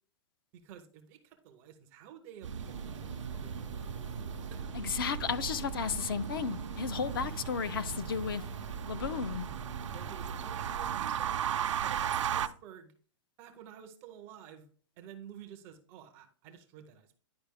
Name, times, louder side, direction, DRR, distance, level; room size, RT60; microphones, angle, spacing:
voice 1, 0.5-3.9 4.5-4.8 9.9-12.9 13.4-14.7 15.0-17.2, right 9 dB, 15° right, 7 dB, 0.4 m, -51 dB
sound 1, 2.4-12.5, right 8 dB, 85° right, 0.6 m, -36 dB
sound 2, 2.6-10.9, left 4 dB, 80° left, 1.0 m, -52 dB
voice 2, 4.7-8.5 8.9-9.5, left 6 dB, 50° left, 15 dB, 0.5 m, -34 dB
10.5 x 4.7 x 3.4 m, 0.43 s
hypercardioid pair, 180°, 15 cm